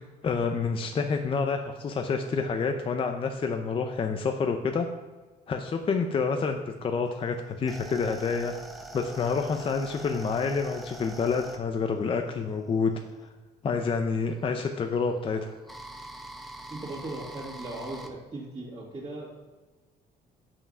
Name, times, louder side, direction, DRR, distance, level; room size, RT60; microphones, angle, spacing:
voice 1, 0.2-4.9 5.5-8.5 8.9-12.9 13.6-15.6, left 5 dB, 30° left, 5 dB, 0.6 m, -28 dB
sound 1, 7.1-13.3 14.3-18.1, right 1 dB, ahead, 0.9 m, -44 dB
voice 2, 16.7-19.3, right 2 dB, 25° right, -8 dB, 2.3 m, -38 dB
7.2 x 5.8 x 5.5 m, 1.3 s
cardioid pair, 110°, 17 cm